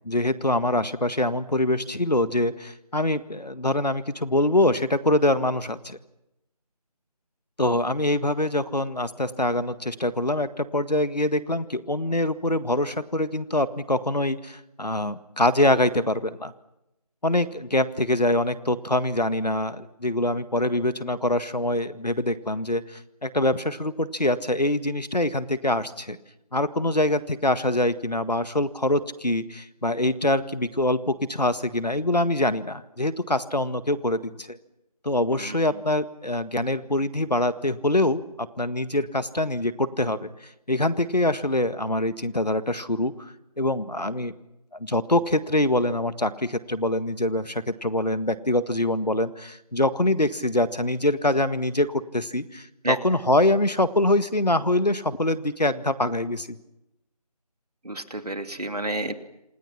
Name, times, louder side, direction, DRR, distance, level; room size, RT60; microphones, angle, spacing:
voice 1, 0.0-6.0 7.6-16.5 17.2-26.2 26.5-34.6 35.0-44.3 44.8-56.6, left 1 dB, 85° left, 13 dB, 1.7 m, -24 dB
voice 2, 57.8-59.1, right 1 dB, 70° right, 7 dB, 2.7 m, -30 dB
28.0 x 26.5 x 6.0 m, 0.89 s
figure-of-eight pair, 160°, 20 cm